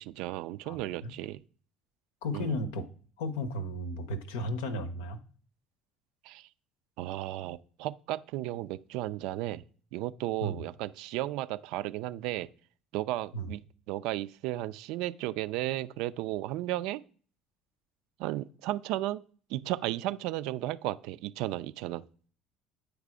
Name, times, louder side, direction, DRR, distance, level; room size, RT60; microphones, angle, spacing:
voice 1, 0.0-1.4 2.3-2.6 6.3-6.4 7.0-9.6 9.9-12.5 12.9-13.6 13.9-17.0 18.2-19.2 19.5-22.0, right 15 dB, 70° right, 0.3 m, -34 dB
voice 2, 0.6-1.1 2.2-2.9 3.2-5.2 10.4-10.6 13.3-13.5, left 1 dB, 75° left, 0.7 m, -34 dB
8.2 x 3.3 x 4.9 m
hypercardioid pair, 60°, 0 cm